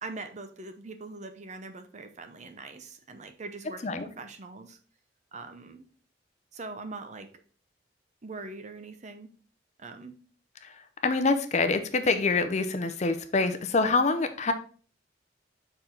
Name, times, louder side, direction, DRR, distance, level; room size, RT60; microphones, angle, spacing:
voice 1, 0.0-4.8 5.3-5.9 6.5-7.3 8.2-9.3 9.8-10.2, right 3 dB, 40° right, 8 dB, 0.7 m, -42 dB
voice 2, 11.0-14.5, left 3 dB, 40° left, 9 dB, 0.6 m, -25 dB
6.7 x 3.8 x 4.5 m, 0.41 s
head